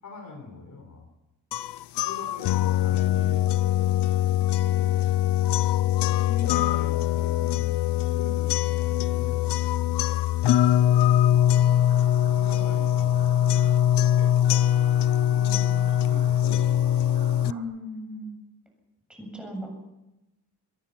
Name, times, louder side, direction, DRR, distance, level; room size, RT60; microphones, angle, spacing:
voice 1, 0.0-1.0 2.0-3.9 4.7-5.0 5.4-10.0 11.0-11.6 12.0-14.6 15.3-17.0, left 3 dB, 45° left, 4 dB, 5.3 m, -44 dB
sound 1, 1.5-17.5, left 12 dB, 80° left, 0.6 m, -22 dB
sound 2, 11.3-17.6, right 6 dB, 75° right, 7.5 m, -47 dB
voice 2, 17.4-18.4 19.2-19.7, equal, ahead, 1 dB, 7.7 m, -36 dB
23.0 x 21.5 x 5.9 m, 0.94 s
wide cardioid pair, 165°, 40 cm